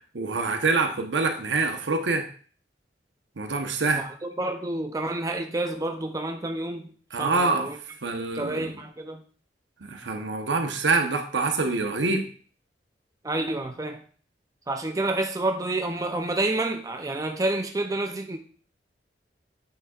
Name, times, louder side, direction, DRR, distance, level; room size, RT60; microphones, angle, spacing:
voice 1, 0.1-2.3 3.4-4.0 7.1-7.7 8.0-8.7 9.9-12.3, right 3 dB, 80° right, 1.0 m, -25 dB
voice 2, 3.9-6.9 7.2-7.8 8.3-9.2 13.2-14.0 14.7-18.4, right 2 dB, 20° right, 0.5 m, -29 dB
8.5 x 6.4 x 2.4 m
head